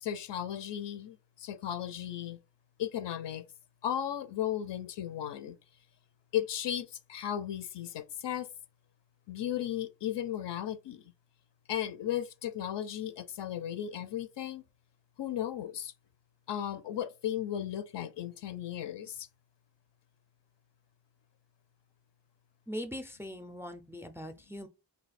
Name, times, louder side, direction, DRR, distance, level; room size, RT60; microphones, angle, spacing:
voice 1, 0.0-2.4 2.8-3.5 3.8-5.6 6.3-8.5 9.3-11.0 11.7-14.6 15.2-15.9 16.5-19.3, left 10 dB, 70° left, 0.5 m, -35 dB
voice 2, 22.7-24.7, equal, 5° right, 0.4 m, -41 dB
2.7 x 2.3 x 4.1 m
cardioid pair, 75°, 45 cm